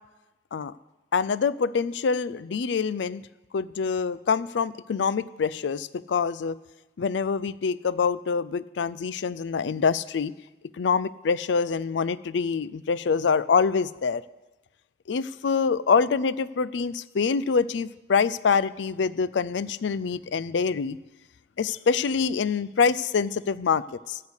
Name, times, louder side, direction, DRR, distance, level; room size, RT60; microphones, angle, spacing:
voice 1, 1.1-3.2 3.5-6.6 7.0-10.3 10.8-14.2 15.1-21.0 21.6-24.2, left 5 dB, 85° left, 18 dB, 0.4 m, -25 dB
15.0 x 6.6 x 8.1 m, 1.1 s
head